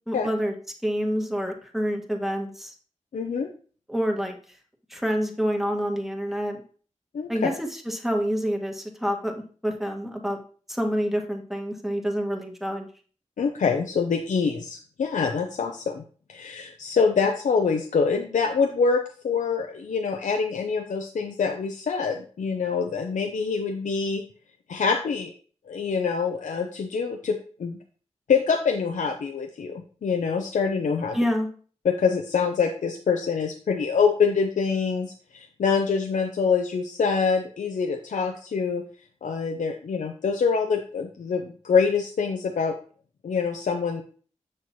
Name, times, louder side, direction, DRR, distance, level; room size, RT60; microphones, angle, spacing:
voice 1, 0.1-0.5 0.8-2.7 3.9-4.4 4.9-6.6 7.3-10.4 10.7-12.9 31.1-31.5, equal, ahead, 2 dB, 1.6 m, -27 dB
voice 2, 3.1-3.5 7.1-7.5 13.4-16.0 16.3-24.2 24.7-25.3 25.7-27.8 28.3-31.2 31.8-38.8 39.2-42.7 43.2-44.0, left 5 dB, 85° left, 3 dB, 0.6 m, -25 dB
7.0 x 6.4 x 2.9 m, 0.42 s
cardioid pair, 50°, 13 cm